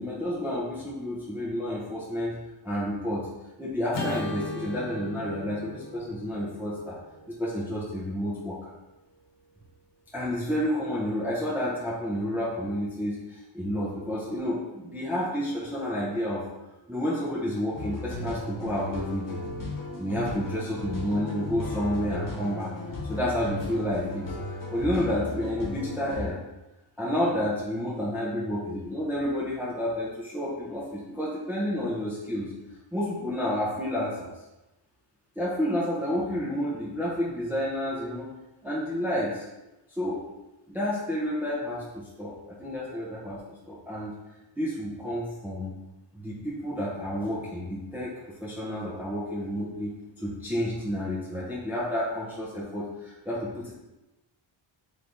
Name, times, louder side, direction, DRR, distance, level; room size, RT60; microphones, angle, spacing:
voice 1, 0.0-2.4 2.6-3.3 3.6-7.0 7.3-8.7 10.1-16.4 16.9-19.4 20.0-22.7 23.1-24.3 24.7-26.4 27.0-32.5 32.9-34.3 35.4-38.3 38.6-39.5 40.0-40.2 40.7-43.4 43.7-44.1 44.6-45.7 46.1-53.7, equal, 5° right, -7 dB, 0.6 m, -30 dB
Acoustic guitar / Strum, 3.9-8.4, left 2 dB, 65° left, 1.1 m, -38 dB
sound 1, 17.7-26.3, left 1 dB, 45° left, 1.1 m, -35 dB
3.4 x 3.3 x 3.8 m, 0.99 s
wide cardioid pair, 165°, 46 cm